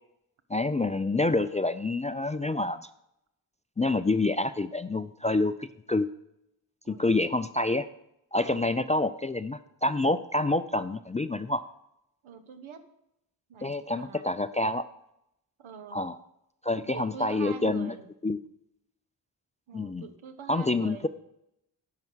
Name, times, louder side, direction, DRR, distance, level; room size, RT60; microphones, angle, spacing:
voice 1, 0.5-2.9 3.8-6.1 6.9-7.9 8.3-11.6 13.6-14.8 15.9-16.2 16.6-17.9 18.2-18.4 19.7-20.1 20.5-21.1, left 2 dB, 15° left, 13 dB, 0.3 m, -27 dB
voice 2, 8.4-8.8 12.2-12.9 13.5-14.3 15.6-16.0 16.7-18.1 19.7-21.1, right 7 dB, 70° right, 9 dB, 1.1 m, -44 dB
10.5 x 5.8 x 6.2 m, 0.82 s
cardioid pair, 40°, 49 cm